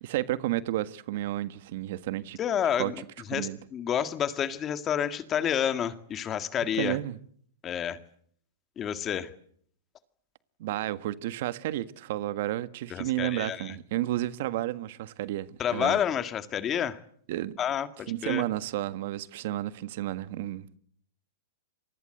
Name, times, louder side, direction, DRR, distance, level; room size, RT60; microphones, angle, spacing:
voice 1, 0.0-2.4 2.8-3.0 3.3-3.6 6.8-7.2 10.6-16.0 17.3-17.6 18.1-20.8, right 15 dB, 60° right, 1.6 m, -31 dB
voice 2, 2.4-3.0 3.3-7.0 7.6-8.0 8.8-9.3 12.9-13.8 15.6-17.0 17.6-18.4, left 9 dB, 25° left, 1.9 m, -29 dB
29.0 x 24.5 x 8.0 m
hypercardioid pair, 140°, 0 cm